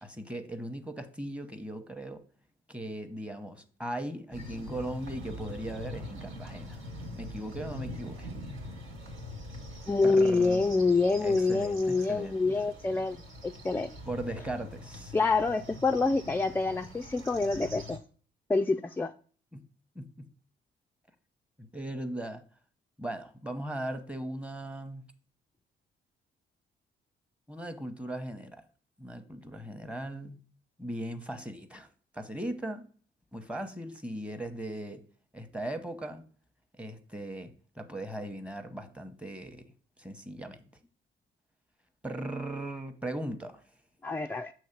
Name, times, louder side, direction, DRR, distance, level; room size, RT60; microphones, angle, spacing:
voice 1, 0.0-2.2 2.7-6.8 7.1-8.3 10.0-10.6 11.2-12.6 12.9-13.2 14.1-15.2 19.5-19.7 19.9-20.3 21.6-22.4 23.0-25.0 27.5-28.6 29.0-30.4 30.8-31.9 32.1-32.8 33.3-35.0 35.3-36.2 36.7-39.6 40.0-40.6 42.0-43.6, right 1 dB, 5° right, 0.9 m, -38 dB
sound 1, 4.3-18.0, left 1 dB, 80° right, 1.7 m, -43 dB
voice 2, 9.9-13.2 13.4-13.9 15.1-18.0 18.5-19.1 44.0-44.5, left 3 dB, 10° left, 0.3 m, -26 dB
6.4 x 3.1 x 5.8 m
cardioid pair, 90°, 20 cm